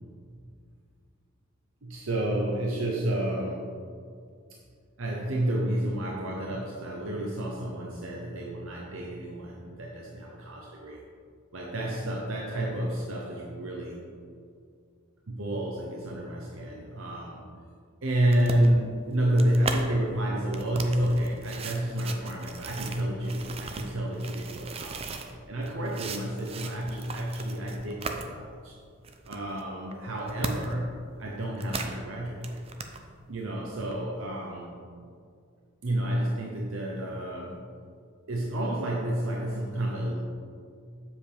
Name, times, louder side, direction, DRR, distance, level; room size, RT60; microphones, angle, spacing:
voice 1, 1.8-3.7 5.0-11.0 11.5-14.0 15.3-17.5 18.0-25.1 25.5-28.7 29.3-32.6 33.3-34.7 35.8-37.6 38.3-40.2, right 1 dB, 70° right, -2 dB, 0.8 m, -30 dB
sound 1, 18.3-19.8 20.4-25.3 25.6-28.2 28.6-28.7 29.0-30.8 31.1-32.0 32.3-33.0 33.8-33.9, right 4 dB, 30° right, 0.5 m, -37 dB
7.6 x 7.1 x 3.4 m, 2.3 s
head